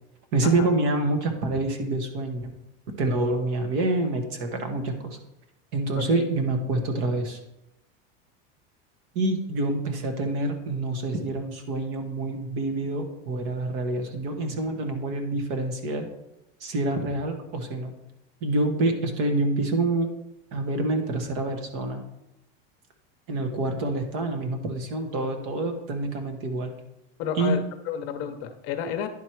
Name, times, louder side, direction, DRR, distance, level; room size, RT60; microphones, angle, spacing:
voice 1, 0.3-2.5 3.0-5.2 5.7-7.4 9.1-16.1 16.6-17.9 18.4-20.1 20.5-22.0 23.3-26.7 27.4-27.5, right 2 dB, 50° right, 5 dB, 1.3 m, -27 dB
voice 2, 27.2-29.1, left 8 dB, 50° left, 7 dB, 0.8 m, -31 dB
10.5 x 4.6 x 4.6 m, 0.88 s
supercardioid pair, 160°, 29 cm